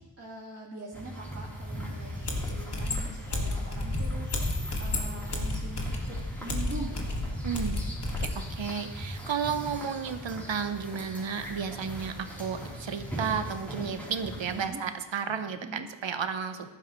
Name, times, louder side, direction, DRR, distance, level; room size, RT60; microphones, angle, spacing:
voice 1, 0.0-4.3 4.8-5.8 6.1-7.2 14.5-14.8 15.6-15.9, right 2 dB, 30° right, -6 dB, 1.8 m, -43 dB
sound 1, 0.9-14.7, equal, 5° left, 3.5 m, -39 dB
sound 2, 2.2-8.4, left 2 dB, 55° left, 2.0 m, -32 dB
voice 2, 7.4-7.8 8.2-16.7, right 6 dB, 70° right, 9 dB, 0.9 m, -33 dB
14.0 x 11.5 x 3.1 m, 1.2 s
wide cardioid pair, 85°, 47 cm